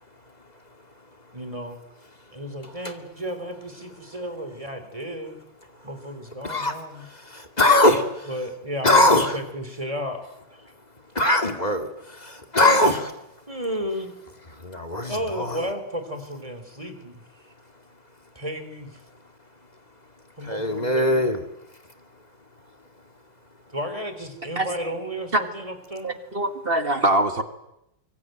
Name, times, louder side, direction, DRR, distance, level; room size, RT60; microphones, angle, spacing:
voice 1, 1.3-1.8 2.3-5.4 5.8-7.0 8.3-10.2 10.5-10.7 13.5-14.1 15.1-17.2 18.4-18.9 20.4-21.3 23.7-26.2, equal, 15° right, 8 dB, 3.7 m, -33 dB
voice 2, 7.6-8.0 8.8-9.4 11.2-11.9 12.5-13.1 14.6-15.7 20.5-21.4, left 1 dB, 20° left, 5 dB, 2.4 m, -20 dB
voice 3, 26.0-27.4, right 1 dB, 30° right, 8 dB, 1.8 m, -23 dB
24.5 x 23.5 x 9.2 m, 0.85 s
omnidirectional pair, 2.0 m